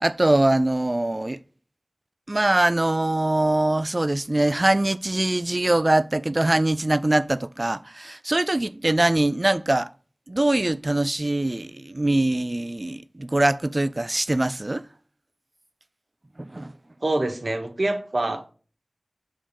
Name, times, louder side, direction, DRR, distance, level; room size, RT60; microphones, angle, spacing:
voice 1, 0.0-1.4 2.3-9.9 10.3-14.8 16.4-16.7, right 1 dB, 35° right, 0.3 m, -22 dB
voice 2, 17.0-18.5, right 2 dB, 60° right, 1.0 m, -25 dB
6.9 x 3.7 x 6.5 m
wide cardioid pair, 65°, 0 cm